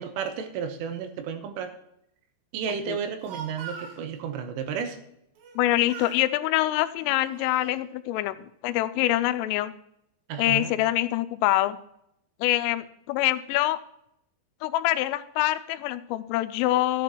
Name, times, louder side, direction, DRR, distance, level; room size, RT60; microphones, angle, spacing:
voice 1, 0.0-1.7 2.5-5.0 10.3-10.7, right 7 dB, 85° right, 7 dB, 3.6 m, -32 dB
Speech, 3.0-4.0 5.4-5.6 5.9-6.3 7.0-7.8, right 5 dB, 70° right, 2.3 m, -42 dB
voice 2, 5.6-8.4 8.6-9.7 10.4-11.8 12.4-13.8 14.6-17.0, left 15 dB, 85° left, 11 dB, 3.1 m, -25 dB
13.5 x 10.5 x 3.0 m, 0.77 s
omnidirectional pair, 5.7 m